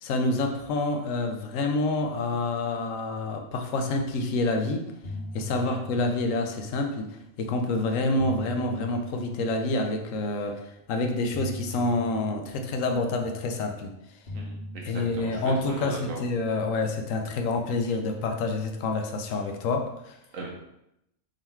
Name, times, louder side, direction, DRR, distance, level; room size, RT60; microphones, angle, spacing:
voice 1, 0.0-4.9 5.3-7.1 7.4-13.9 14.8-20.2, left 2 dB, 70° left, 4 dB, 1.0 m, -27 dB
sound 1, 4.4-4.6 4.9-7.2 7.9-10.3 11.3-13.8 14.3-16.8, left 1 dB, 45° left, 1.2 m, -42 dB
voice 2, 14.3-16.2 20.3-20.6, right 4 dB, 70° right, -1 dB, 1.1 m, -38 dB
3.7 x 3.0 x 4.3 m, 0.82 s
omnidirectional pair, 1.5 m